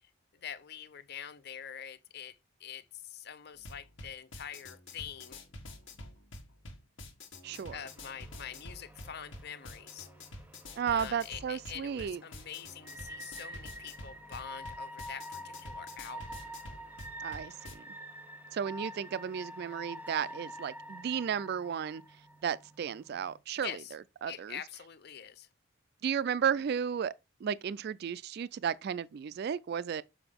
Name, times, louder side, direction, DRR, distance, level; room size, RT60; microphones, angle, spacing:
voice 1, 0.3-5.4 7.7-10.1 10.9-16.4 23.6-23.9 24.3-25.5, left 8 dB, 55° left, 0.6 m, -45 dB
sound 1, 3.6-17.7, left 2 dB, 70° left, 1.6 m, -48 dB
sound 2, 7.4-23.4, equal, 10° right, 0.8 m, -47 dB
voice 2, 7.4-7.8 10.8-12.2 17.2-17.8 18.5-22.0 22.4-23.7 24.2-24.6 26.0-27.1 27.4-30.0, right 7 dB, 50° right, 0.3 m, -33 dB
6.9 x 4.9 x 3.6 m
head